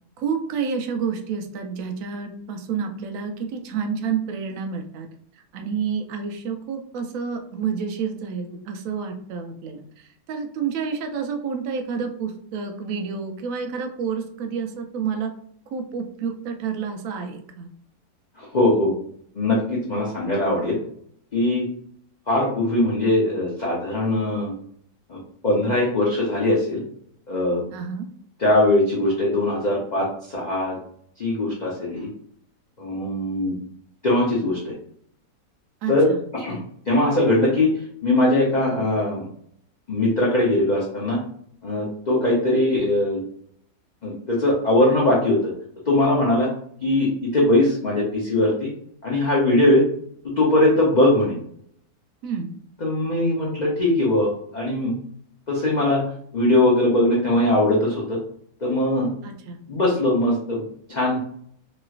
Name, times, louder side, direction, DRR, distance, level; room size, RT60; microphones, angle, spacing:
voice 1, 0.2-5.1 5.5-15.3 15.7-17.7 27.7-28.1 35.8-36.2 52.2-52.5 59.2-59.6, right 6 dB, 65° right, 5 dB, 0.9 m, -29 dB
voice 2, 18.4-18.9 19.4-20.8 21.3-21.7 22.3-24.5 25.1-25.2 25.4-26.8 27.3-27.6 28.4-30.8 31.2-32.1 32.8-33.5 34.0-34.7 35.9-36.6 36.9-37.7 38.0-39.3 39.9-41.2 41.6-43.2 44.0-45.5 45.9-46.5 46.8-48.7 49.0-49.8 50.2-51.4 52.8-55.0 55.5-56.0 56.3-58.2 58.6-59.1 59.7-60.6 60.9-61.2, left 1 dB, 45° left, -5 dB, 0.6 m, -20 dB
3.1 x 3.0 x 2.4 m, 0.64 s
omnidirectional pair, 1.7 m